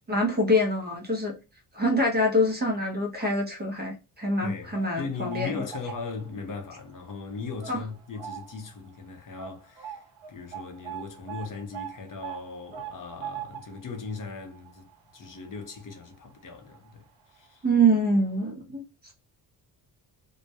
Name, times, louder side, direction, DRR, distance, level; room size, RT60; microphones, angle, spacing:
voice 1, 0.1-1.3 1.7-5.5 7.7-7.8 17.6-19.1, equal, 20° right, 0.6 m, -25 dB
voice 2, 4.4-14.9 15.1-17.7, left 4 dB, 45° left, 0.6 m, -38 dB
sound 1, 4.6-6.4 6.8-7.1 7.6-8.7 9.0-9.1 9.4-16.4 16.7-16.9 17.7-17.8 18.2-18.3, right 9 dB, 85° right, 0.9 m, -42 dB
2.2 x 2.1 x 2.6 m
wide cardioid pair, 135°, 47 cm